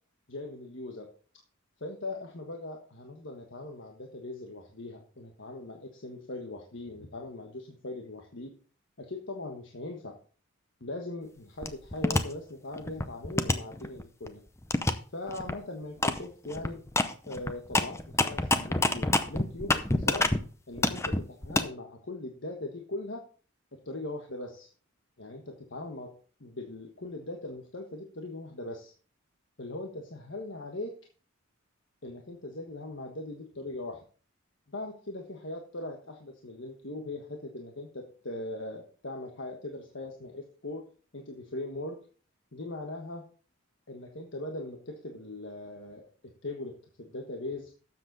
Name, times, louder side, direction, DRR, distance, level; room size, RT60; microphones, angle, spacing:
voice 1, 0.3-1.1 1.8-8.5 9.0-10.1 10.8-14.4 15.1-16.8 17.3-20.3 20.7-23.2 23.8-24.7 25.2-26.1 26.4-28.9 29.6-30.9 32.0-34.0 34.7-40.8 41.1-42.0 42.5-43.2 43.9-46.1 46.4-47.7, left 2 dB, 65° left, 2 dB, 1.4 m, -40 dB
sound 1, 11.6-12.2 12.7-14.3 14.7-14.9 15.3-15.5 16.0-16.2 16.5-20.4 20.8-21.6, left 2 dB, 15° left, 0.6 m, -27 dB
12.5 x 7.6 x 4.1 m, 0.40 s
head